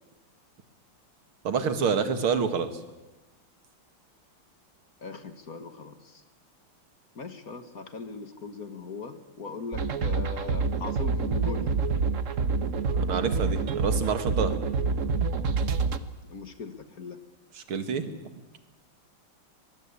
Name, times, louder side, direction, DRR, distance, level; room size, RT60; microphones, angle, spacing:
voice 1, 1.4-2.7 12.9-14.6 17.7-18.1, right 6 dB, 80° right, 10 dB, 2.6 m, -27 dB
voice 2, 5.0-6.2 7.2-11.7 16.3-17.2, left 4 dB, 45° left, 10 dB, 1.9 m, -39 dB
sound 1, 9.7-16.0, right 4 dB, 45° right, 1.2 m, -27 dB
23.0 x 22.0 x 8.5 m, 1.1 s
omnidirectional pair, 2.3 m